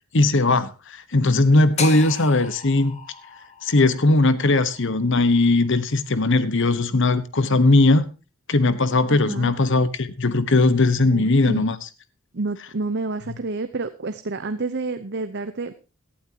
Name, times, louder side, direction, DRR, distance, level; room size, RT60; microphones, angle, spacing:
voice 1, 0.1-0.7 1.1-3.0 3.6-8.0 8.5-11.8, left 2 dB, 60° left, 1.2 m, -19 dB
sound 1, 1.8-5.9, left 5 dB, 30° left, 1.9 m, -35 dB
voice 2, 9.1-9.5 11.1-11.6 12.3-15.7, right 3 dB, 55° right, 0.8 m, -29 dB
17.5 x 11.5 x 2.9 m
head